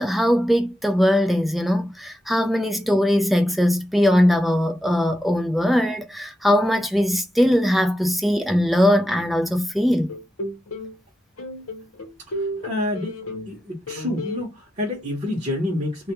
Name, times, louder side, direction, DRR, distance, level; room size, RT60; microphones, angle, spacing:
voice 1, 0.0-10.1, equal, ahead, 0.4 m, -20 dB
sound 1, 10.1-10.9 11.4-13.6 13.9-14.4, equal, 80° left, 0.8 m, -32 dB
voice 2, 12.6-13.2 13.5-16.1, left 1 dB, 30° right, 0.8 m, -27 dB
2.2 x 2.2 x 2.8 m
head